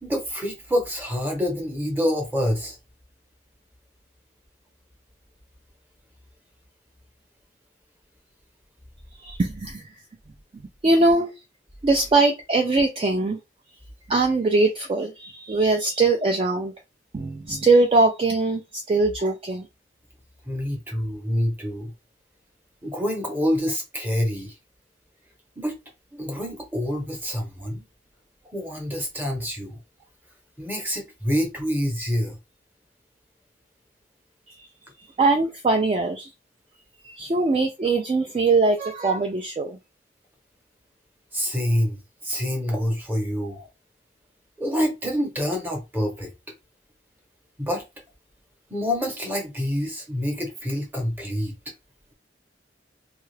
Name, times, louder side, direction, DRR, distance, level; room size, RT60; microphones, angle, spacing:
voice 1, 0.0-2.8 20.4-21.9 22.8-24.5 25.6-25.8 26.1-27.8 28.5-29.7 30.6-32.4 41.3-43.7 44.6-46.3 47.6-47.8 48.7-51.5, equal, 10° right, 0.8 m, -27 dB
voice 2, 9.2-9.8 10.8-11.3 11.8-13.4 14.1-16.7 17.1-19.7 35.2-36.3 37.0-39.8, right 3 dB, 30° right, 0.3 m, -21 dB
2.7 x 2.3 x 3.2 m
head